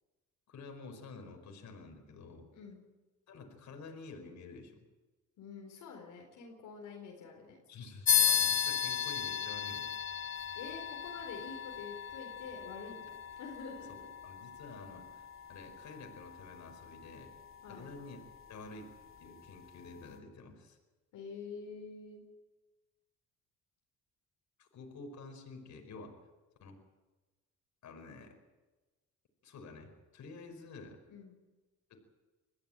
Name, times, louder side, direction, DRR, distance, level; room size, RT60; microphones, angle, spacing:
voice 1, 0.5-2.5 3.3-4.8 7.7-9.9 13.9-14.0 14.2-17.3 17.7-18.2 18.5-18.9 19.2-20.8 24.6-26.1 26.6-26.8 27.8-28.4 29.4-31.0 31.9-32.0, left 3 dB, 65° left, 4 dB, 5.0 m, -49 dB
voice 2, 2.5-2.8 5.4-7.6 10.5-14.1 17.6-17.9 21.1-22.2 31.1-31.3, left 5 dB, 85° left, 0 dB, 4.4 m, -47 dB
sound 1, 8.1-18.0, left 8 dB, 45° left, 2.8 m, -35 dB
22.5 x 15.5 x 9.0 m, 1.2 s
cardioid pair, 90°, 30 cm